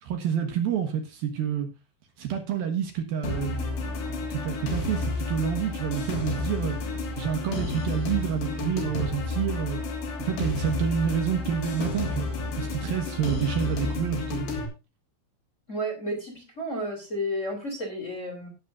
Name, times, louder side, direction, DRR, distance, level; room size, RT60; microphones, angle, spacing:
voice 1, 0.0-1.7 2.2-6.8 7.2-9.8 10.2-12.3 12.6-14.5, right 8 dB, 65° right, 5 dB, 2.9 m, -28 dB
sound 1, 3.2-14.7, left 3 dB, 75° left, 5.3 m, -31 dB
voice 2, 15.7-18.5, equal, 20° left, 2 dB, 2.8 m, -32 dB
17.5 x 8.6 x 2.5 m, 0.28 s
omnidirectional pair, 5.0 m